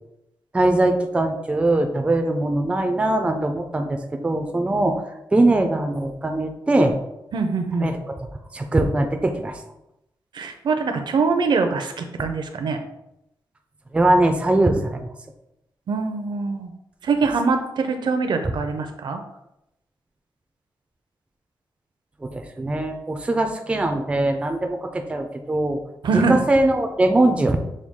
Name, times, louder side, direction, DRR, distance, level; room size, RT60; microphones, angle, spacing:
voice 1, 0.5-4.0 4.2-5.0 5.3-7.0 7.8-8.0 8.5-9.6 12.2-12.3 13.9-15.1 22.2-25.8 26.1-27.6, right 2 dB, 15° right, 5 dB, 0.4 m, -21 dB
voice 2, 7.3-7.9 10.3-12.8 15.9-16.7 17.0-19.2 26.0-26.4, right 4 dB, 70° right, 6 dB, 0.5 m, -23 dB
6.2 x 2.3 x 3.6 m, 0.85 s
wide cardioid pair, 155°, 8 cm